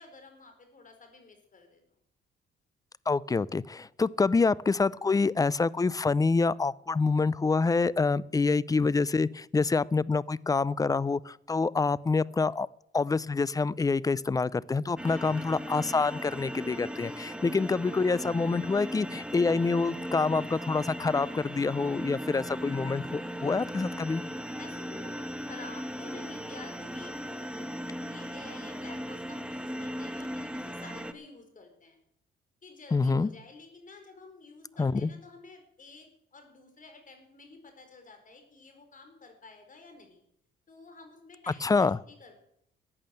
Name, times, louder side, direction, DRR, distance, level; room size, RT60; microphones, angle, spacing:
voice 1, 0.0-1.8 15.1-15.4 16.7-17.5 24.5-32.0 32.6-40.2 40.7-42.4, left 3 dB, 40° left, 6 dB, 4.6 m, -51 dB
voice 2, 3.1-12.7 12.9-24.2 32.9-33.3 34.8-35.1 41.6-42.0, left 4 dB, 20° left, 22 dB, 0.5 m, -26 dB
sound 1, 15.0-31.1, equal, 5° right, 1.3 m, -38 dB
14.5 x 8.8 x 7.8 m, 0.73 s
cardioid pair, 90°, 20 cm